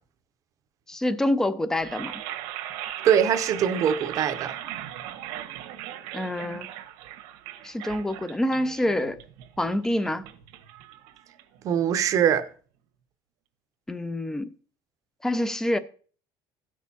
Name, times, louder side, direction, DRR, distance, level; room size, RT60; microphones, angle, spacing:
voice 1, 0.9-2.1 6.1-6.7 7.6-9.2 9.6-10.3 13.9-14.5 15.2-15.8, left 1 dB, 5° left, 0.3 m, -26 dB
sound 1, 1.7-11.8, right 12 dB, 85° right, 1.1 m, -38 dB
voice 2, 3.0-4.5 11.6-12.4, right 8 dB, 35° right, 0.6 m, -22 dB
17.0 x 6.2 x 2.8 m
cardioid pair, 180°, 10 cm